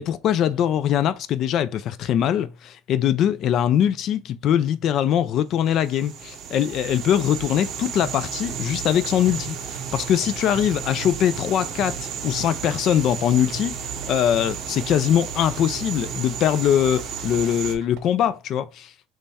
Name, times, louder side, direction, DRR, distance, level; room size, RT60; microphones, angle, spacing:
voice 1, 0.0-18.9, left 10 dB, 45° left, 0.3 m, -22 dB
sound 1, 5.6-17.8, right 7 dB, 45° right, 0.8 m, -33 dB
sound 2, 8.0-18.0, right 11 dB, 75° right, 0.7 m, -42 dB
3.3 x 3.2 x 4.1 m
cardioid pair, 165°, 0 cm